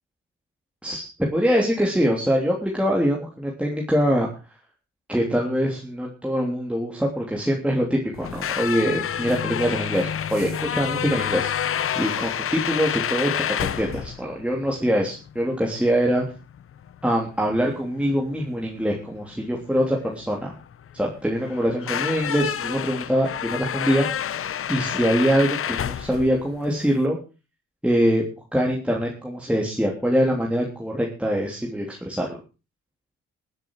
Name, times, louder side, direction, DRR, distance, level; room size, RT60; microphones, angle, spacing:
voice 1, 0.8-4.6 5.1-16.2 17.0-20.5 20.9-24.1 24.7-27.2 27.8-28.3 28.5-32.4, equal, 5° right, -2 dB, 3.2 m, -24 dB
sound 1, 8.1-27.1, left 9 dB, 50° left, 0.7 m, -29 dB
21.0 x 8.0 x 4.8 m, 0.32 s
cardioid pair, 95°, 29 cm